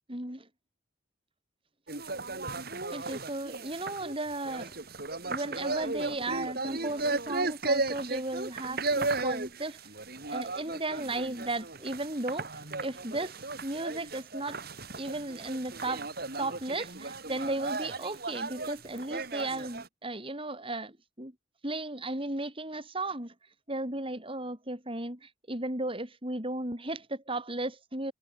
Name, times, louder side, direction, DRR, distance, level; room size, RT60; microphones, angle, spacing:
voice 1, 0.1-0.5 2.9-4.8 5.3-9.8 10.2-12.5 12.8-14.6 14.9-16.1 16.4-21.3 21.6-23.3 23.7-28.1, right 2 dB, 30° right, 6.1 m, -35 dB
sound 1, 1.9-19.9, right 3 dB, 55° right, 6.5 m, -35 dB
head